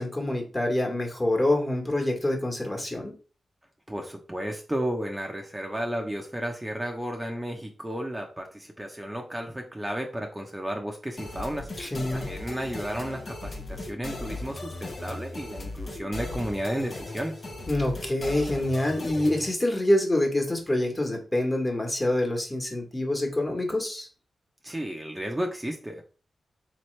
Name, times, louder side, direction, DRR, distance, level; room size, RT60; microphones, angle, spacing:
voice 1, 0.0-3.1 11.8-12.2 17.7-24.1, left 1 dB, 25° left, 2 dB, 1.4 m, -26 dB
voice 2, 3.9-11.7 12.1-17.4 24.6-26.0, right 1 dB, 15° right, 2 dB, 0.7 m, -33 dB
sound 1, 11.2-19.5, left 2 dB, 50° left, 0.8 m, -37 dB
3.7 x 3.0 x 3.2 m, 0.36 s
cardioid pair, 50°, 0 cm